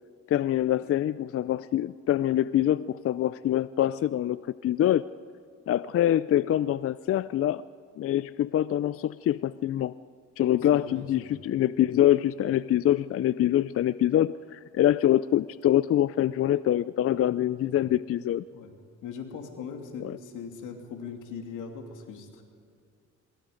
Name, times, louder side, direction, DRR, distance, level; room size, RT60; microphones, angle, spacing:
voice 1, 0.3-4.4 4.6-5.0 5.7-7.6 8.0-9.9 10.4-18.4 20.0-20.2, left 12 dB, 50° left, 16 dB, 0.4 m, -25 dB
voice 2, 10.7-11.3 18.5-18.7 19.0-22.4, left 6 dB, 85° left, 3 dB, 2.8 m, -40 dB
24.5 x 22.5 x 5.1 m, 2.2 s
cardioid pair, 90°, 30 cm